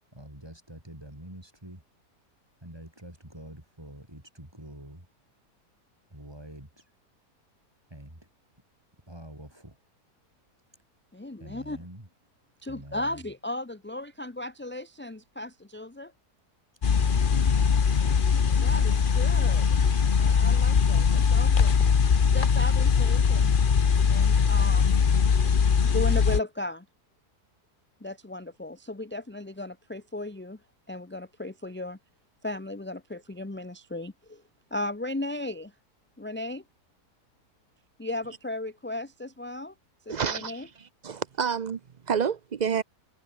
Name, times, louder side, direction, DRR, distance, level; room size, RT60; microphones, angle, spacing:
voice 1, 0.1-1.8 2.6-5.1 6.1-6.9 7.9-8.3 9.1-9.8 11.4-12.1 12.7-13.2 16.9-17.7, right 1 dB, 15° right, 4.9 m, -46 dB
voice 2, 11.1-11.8 12.6-16.1 18.6-19.8 20.2-21.9 22.3-23.5 24.1-24.9 25.8-26.8 28.0-30.6 30.9-32.0 32.4-34.1 34.7-35.7 36.2-36.6 38.0-39.7 40.1-40.7, left 2 dB, 10° left, 0.6 m, -35 dB
sound 1, 16.8-26.4, left 6 dB, 40° left, 1.0 m, -21 dB
voice 3, 40.1-41.8 42.1-42.8, right 7 dB, 50° right, 0.5 m, -29 dB
omnidirectional pair, 1.7 m